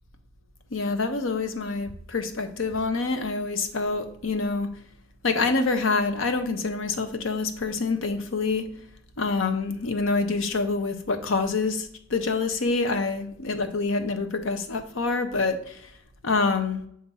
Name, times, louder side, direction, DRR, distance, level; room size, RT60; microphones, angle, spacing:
voice 1, 0.7-4.7 5.2-8.7 9.2-15.9 16.2-16.8, left 3 dB, 85° left, 0.7 m, -26 dB
7.0 x 2.6 x 5.3 m
head